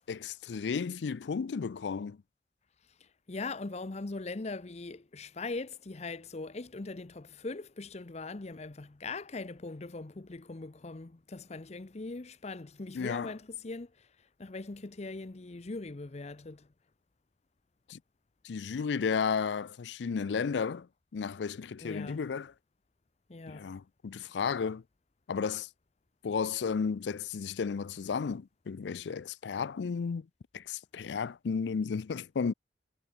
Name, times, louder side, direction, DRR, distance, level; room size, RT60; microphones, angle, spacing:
voice 1, 0.1-2.2 12.9-13.3 17.9-18.0 18.4-20.9 21.1-22.5 23.5-24.8 25.3-25.7 26.2-30.3 30.5-32.5, left 5 dB, 80° left, 0.4 m, -33 dB
voice 2, 2.9-16.7 21.8-22.3 23.3-23.8, left 3 dB, 40° left, 0.7 m, -41 dB
head